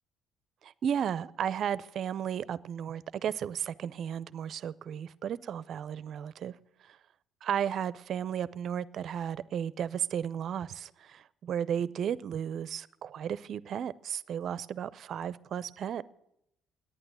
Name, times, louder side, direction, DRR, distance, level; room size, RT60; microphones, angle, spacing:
voice 1, 0.6-6.5 7.4-16.0, right 9 dB, 55° right, 0.5 m, -34 dB
11.0 x 8.9 x 9.4 m
supercardioid pair, 85°, 0 cm